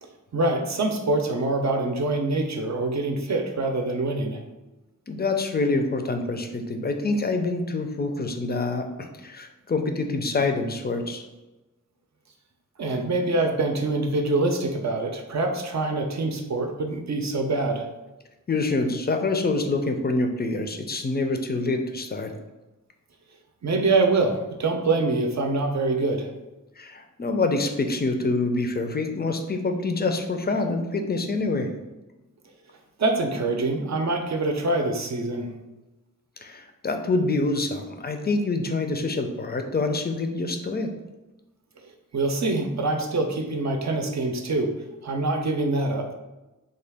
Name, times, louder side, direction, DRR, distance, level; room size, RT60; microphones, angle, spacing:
voice 1, 0.0-4.4 12.8-17.9 23.6-26.3 33.0-35.5 42.1-44.7 45.0-46.1, right 2 dB, 60° right, 4 dB, 0.5 m, -25 dB
voice 2, 5.1-11.3 18.5-22.3 26.8-31.7 36.4-40.9, left 3 dB, 30° left, 5 dB, 0.4 m, -26 dB
3.8 x 2.3 x 3.4 m, 1.1 s
wide cardioid pair, 90°, 32 cm